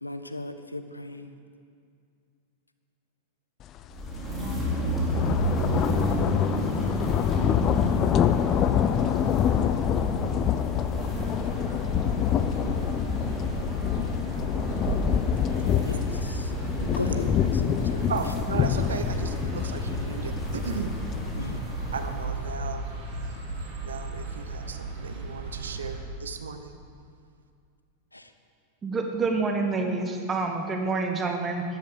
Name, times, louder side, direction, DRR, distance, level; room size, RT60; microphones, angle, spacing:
voice 1, 0.0-1.3 15.8-16.5 17.0-17.3 17.6-18.1 21.4-21.6 28.1-28.3, left 2 dB, 85° left, 10 dB, 0.7 m, -37 dB
sound 1, 3.8-4.0 4.3-21.6, left 9 dB, 30° left, 0.6 m, -27 dB
sound 2, 3.9-22.4, right 1 dB, 5° right, 4.0 m, -32 dB
sound 3, 11.0-26.0, right 3 dB, 45° right, 3.4 m, -35 dB
voice 2, 15.5-16.0 16.8-17.0 18.1-21.0 21.9-22.8 23.8-26.7, right 5 dB, 70° right, 8 dB, 1.1 m, -36 dB
voice 3, 28.8-31.6, right 3 dB, 20° right, 4 dB, 1.5 m, -27 dB
14.0 x 10.5 x 7.7 m, 2.3 s
figure-of-eight pair, 90°, 0 cm